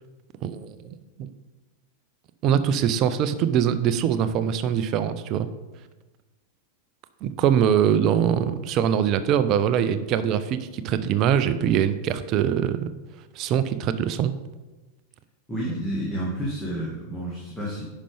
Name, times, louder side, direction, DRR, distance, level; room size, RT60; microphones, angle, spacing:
voice 1, 0.4-1.3 2.4-5.5 7.2-12.9 13.4-14.3, right 9 dB, 35° right, 12 dB, 0.5 m, -23 dB
voice 2, 15.5-17.8, equal, 5° left, -6 dB, 1.7 m, -30 dB
10.0 x 5.5 x 3.4 m, 1.2 s
figure-of-eight pair, 90°, 0 cm